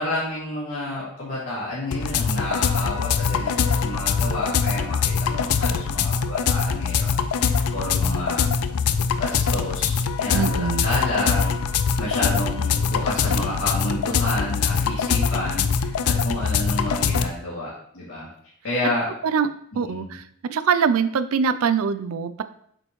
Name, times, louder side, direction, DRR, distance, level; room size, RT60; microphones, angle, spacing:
voice 1, 0.0-8.5 9.2-11.5 12.0-18.3 18.6-19.1 19.7-20.1, left 1 dB, 60° left, -9 dB, 2.2 m, -30 dB
sound 1, 1.9-17.3, left 6 dB, 90° left, 0.4 m, -23 dB
voice 2, 10.3-10.9 19.2-19.5 19.7-22.4, right 6 dB, 70° right, 12 dB, 0.4 m, -23 dB
7.6 x 4.3 x 3.1 m, 0.67 s
head